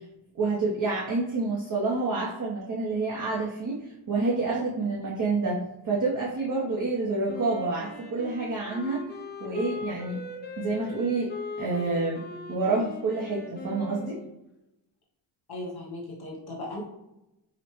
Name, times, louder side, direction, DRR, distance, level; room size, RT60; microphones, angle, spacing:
voice 1, 0.4-9.0 9.4-10.2 10.6-11.3 11.6-12.2 12.5-14.1, right 3 dB, 45° right, -4 dB, 0.7 m, -28 dB
Wind instrument woodwind instrument, 7.2-14.4, left 3 dB, 25° left, 0.5 m, -40 dB
voice 2, 15.5-16.8, left 2 dB, 55° left, -4 dB, 0.9 m, -37 dB
5.0 x 2.1 x 3.0 m, 0.92 s
wide cardioid pair, 125°, 46 cm